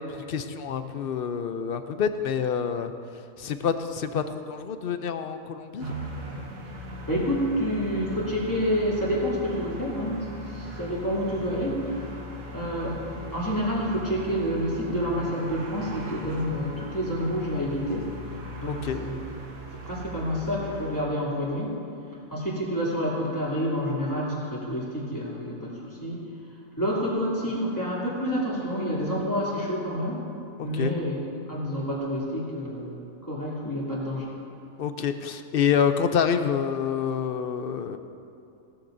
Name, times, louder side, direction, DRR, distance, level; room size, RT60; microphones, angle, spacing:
voice 1, 0.1-2.9 3.4-5.9 18.7-19.0 30.6-30.9 34.8-38.0, left 7 dB, 60° left, 9 dB, 0.6 m, -27 dB
sound 1, 5.8-21.0, equal, 90° right, 1.8 m, -39 dB
voice 2, 7.1-12.0 12.5-18.1 18.6-19.2 19.8-21.8 22.3-26.2 26.8-30.2 30.6-31.2 31.5-34.3, equal, 15° left, -7 dB, 2.8 m, -28 dB
17.5 x 13.0 x 2.6 m, 2.6 s
omnidirectional pair, 1.4 m